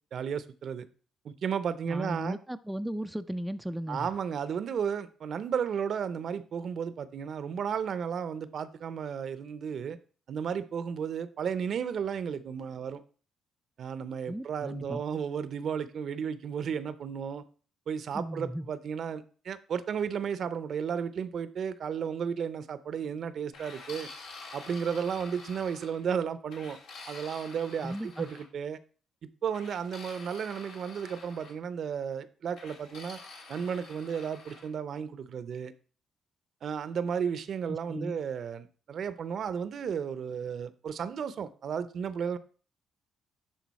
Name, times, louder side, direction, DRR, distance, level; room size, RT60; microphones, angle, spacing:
voice 1, 0.1-0.9 1.2-2.4 3.9-10.0 10.3-13.0 13.8-17.4 17.9-24.1 24.5-26.8 27.1-28.8 29.4-33.2 33.5-35.7 36.6-42.4, right 7 dB, 60° right, 0.6 m, -33 dB
voice 2, 1.8-4.1 14.3-15.0 18.1-18.7 27.8-28.3 37.7-38.2, equal, 5° right, 0.3 m, -36 dB
sound 1, 23.5-26.0 26.5-28.5 29.5-31.6 32.6-34.7, left 3 dB, 80° left, 1.7 m, -48 dB
11.0 x 3.9 x 4.1 m
cardioid pair, 90°, 0 cm